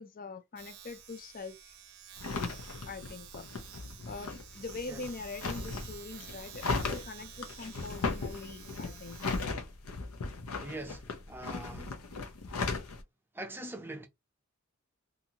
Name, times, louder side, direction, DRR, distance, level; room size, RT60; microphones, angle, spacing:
voice 1, 0.0-1.7 2.9-3.5 4.1-9.3, left 3 dB, 40° left, 0.5 m, -43 dB
Domestic sounds home sounds, 0.6-10.9, right 9 dB, 85° right, 0.6 m, -51 dB
sound 1, 2.2-13.0, left 3 dB, 85° left, 0.6 m, -37 dB
voice 2, 10.6-12.0 13.3-14.1, right 1 dB, 10° right, 0.6 m, -43 dB
2.6 x 2.5 x 2.8 m
head